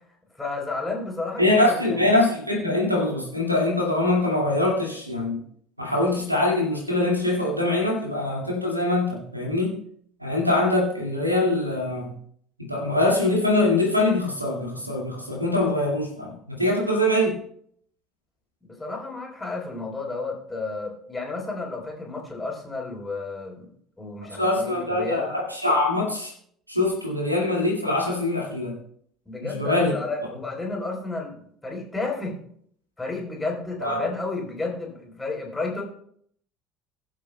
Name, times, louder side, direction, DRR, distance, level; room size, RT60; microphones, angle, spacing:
voice 1, 0.4-2.1 18.7-23.7 24.0-25.3 29.3-32.4 33.0-35.8, left 3 dB, 15° left, -1 dB, 3.9 m, -32 dB
voice 2, 1.4-5.4 5.8-9.8 10.2-12.1 12.6-17.4 24.3-26.3 26.7-28.8 29.4-29.9 33.8-34.1, left 2 dB, 90° right, -1 dB, 2.1 m, -23 dB
21.5 x 7.4 x 2.2 m, 0.65 s
figure-of-eight pair, 60°, 0 cm